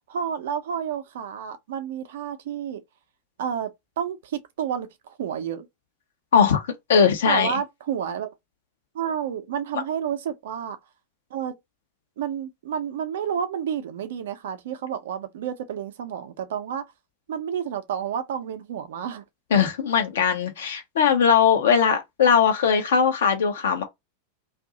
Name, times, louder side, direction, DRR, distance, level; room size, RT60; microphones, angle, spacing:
voice 1, 0.1-2.8 3.4-3.7 4.0-5.7 7.3-8.3 8.9-10.8 11.3-11.6 12.2-16.8 17.3-19.2, right 8 dB, 60° right, 0.7 m, -30 dB
voice 2, 6.3-7.6 19.5-23.8, left 7 dB, 60° left, 0.7 m, -20 dB
2.6 x 2.5 x 3.7 m
figure-of-eight pair, 90°, 0 cm